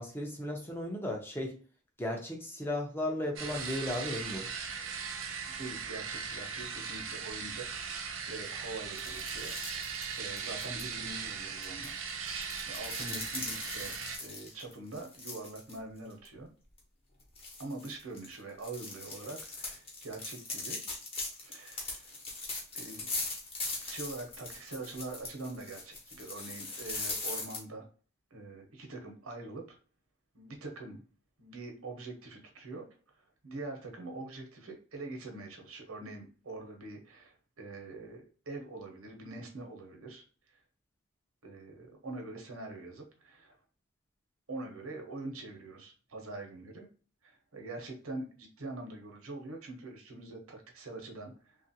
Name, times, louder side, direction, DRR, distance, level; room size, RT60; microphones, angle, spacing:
voice 1, 0.0-1.6 2.0-4.5 13.1-13.2, left 1 dB, 10° left, 1 dB, 0.5 m, -35 dB
sound 1, 3.4-14.2, right 6 dB, 70° right, 0.5 m, -39 dB
voice 2, 5.5-11.9 12.2-12.4 12.6-16.5 17.6-20.8 21.4-22.1 22.7-23.1 23.8-27.8 28.3-29.8 30.3-31.0 31.4-32.9 33.2-40.2 41.4-43.6 44.5-46.9 47.2-51.6, right 2 dB, 85° right, 2 dB, 0.9 m, -44 dB
sound 2, 8.9-10.8 11.6-15.8 16.1-16.3 16.8-16.9 17.4-27.6, left 3 dB, 25° left, 0.8 m, -40 dB
2.9 x 2.4 x 2.7 m, 0.39 s
head